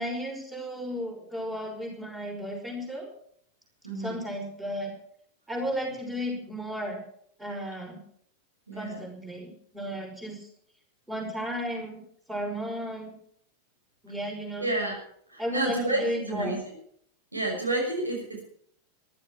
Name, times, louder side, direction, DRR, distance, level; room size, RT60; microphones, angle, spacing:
voice 1, 0.0-3.1 4.0-4.9 5.5-7.0 7.4-8.0 8.7-10.5 11.1-12.0 12.3-13.1 14.0-14.7 15.4-16.6, equal, 10° right, 1 dB, 5.8 m, -34 dB
voice 2, 3.8-4.2 8.7-9.0 14.6-15.0 15.3-16.0 16.3-16.6 17.3-18.4, right 2 dB, 80° right, 1 dB, 6.1 m, -30 dB
15.0 x 13.0 x 6.3 m, 0.65 s
figure-of-eight pair, 90°, 0 cm